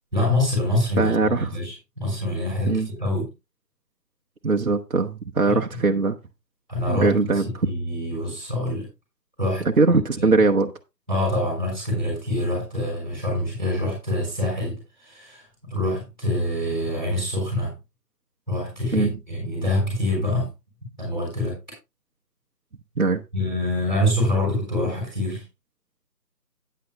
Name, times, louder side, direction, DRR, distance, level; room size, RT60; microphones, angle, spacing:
voice 1, 0.1-3.3 5.4-6.0 6.7-8.9 9.4-9.6 10.2-10.4 11.1-17.7 18.5-20.5 21.0-21.6 23.3-25.4, left 1 dB, ahead, 4.9 m, -26 dB
voice 2, 1.0-1.5 2.7-2.9 4.4-6.2 6.9-7.5 9.6-10.7 18.9-19.1 23.0-23.2, right 3 dB, 55° right, 1.0 m, -21 dB
14.0 x 9.5 x 2.2 m
figure-of-eight pair, 165°, 49 cm